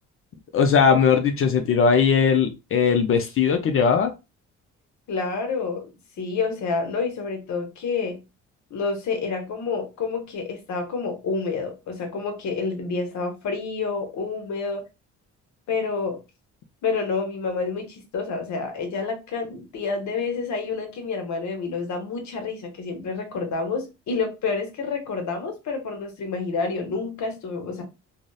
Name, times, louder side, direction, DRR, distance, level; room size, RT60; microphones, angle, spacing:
voice 1, 0.5-4.1, left 6 dB, 45° left, 0.4 m, -19 dB
voice 2, 5.1-5.9 6.2-8.2 8.7-14.8 15.7-16.2 16.8-27.8, left 4 dB, 65° left, 0.9 m, -28 dB
2.7 x 2.0 x 2.2 m
cardioid pair, 90°, 30 cm